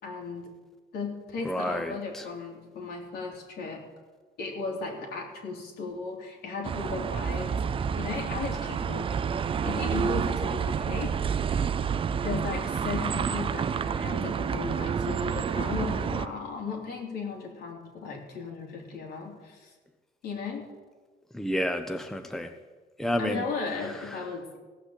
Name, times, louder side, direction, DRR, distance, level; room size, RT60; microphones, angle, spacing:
voice 1, 0.0-0.5 0.9-3.8 4.4-9.1 9.6-11.1 12.1-19.7 20.2-20.7 23.2-24.6, left 4 dB, 70° left, 0 dB, 3.5 m, -36 dB
voice 2, 1.4-2.3 21.3-22.5 23.0-23.4 24.1-24.2, equal, ahead, 7 dB, 0.8 m, -30 dB
sound 1, 6.6-16.3, right 7 dB, 30° right, 0.5 m, -29 dB
16.5 x 6.1 x 8.1 m, 1.3 s
cardioid pair, 110°, 17 cm